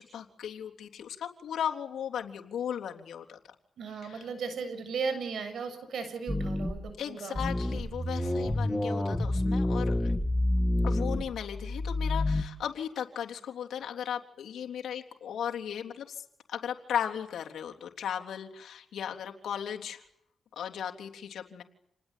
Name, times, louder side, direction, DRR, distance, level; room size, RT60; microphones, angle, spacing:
voice 1, 0.0-3.4 4.0-4.3 7.0-10.2 10.8-20.0 20.5-21.6, left 9 dB, 90° left, 3 dB, 3.5 m, -36 dB
voice 2, 3.8-7.4, right 5 dB, 75° right, 10 dB, 7.0 m, -36 dB
sound 1, 6.3-6.9 7.4-12.4, left 1 dB, 5° left, 2.8 m, -29 dB
29.0 x 20.0 x 9.3 m, 0.72 s
cardioid pair, 95°, 0 cm